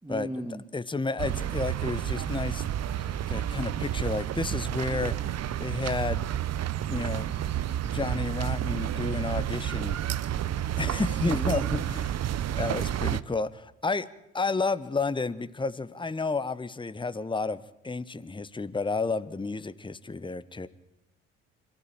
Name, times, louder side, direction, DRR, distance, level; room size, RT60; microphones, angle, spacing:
voice 1, 0.0-0.6 11.3-12.1, right 1 dB, 10° right, 5 dB, 2.2 m, -36 dB
voice 2, 0.7-2.6 2.9-5.1 5.6-6.3 6.9-7.3 7.9-10.0 10.8-11.6 12.5-14.1 14.3-20.7, left 3 dB, 15° left, 14 dB, 1.2 m, -31 dB
sound 1, 1.2-13.2, right 11 dB, 45° right, 1.0 m, -30 dB
27.5 x 13.5 x 8.9 m, 0.86 s
hypercardioid pair, 50°, 36 cm